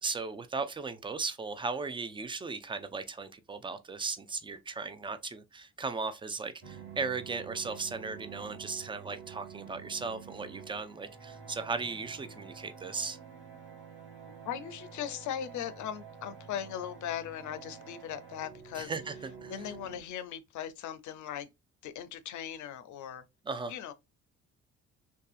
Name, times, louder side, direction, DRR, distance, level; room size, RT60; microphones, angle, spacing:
voice 1, 0.0-13.2 18.8-19.5 23.5-23.7, right 4 dB, 15° right, 0.3 m, -37 dB
sound 1, 6.6-20.0, right 6 dB, 45° right, 1.3 m, -49 dB
voice 2, 14.4-18.9 19.5-21.5 21.8-23.2 23.7-23.9, left 10 dB, 75° left, 0.5 m, -39 dB
2.7 x 2.3 x 2.4 m
cardioid pair, 90°, 30 cm